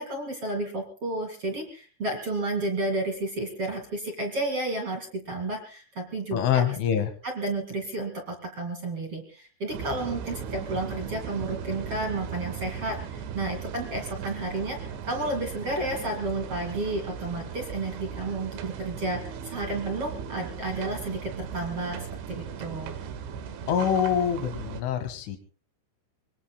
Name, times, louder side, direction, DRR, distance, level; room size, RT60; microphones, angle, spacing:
voice 1, 0.0-6.6 7.2-22.9, right 2 dB, 40° right, 4 dB, 2.5 m, -32 dB
voice 2, 6.3-7.1 23.7-25.4, left 8 dB, 85° left, 10 dB, 4.3 m, -25 dB
sound 1, 9.7-24.8, right 7 dB, 75° right, 3.9 m, -37 dB
25.5 x 22.0 x 2.2 m, 0.38 s
omnidirectional pair, 5.4 m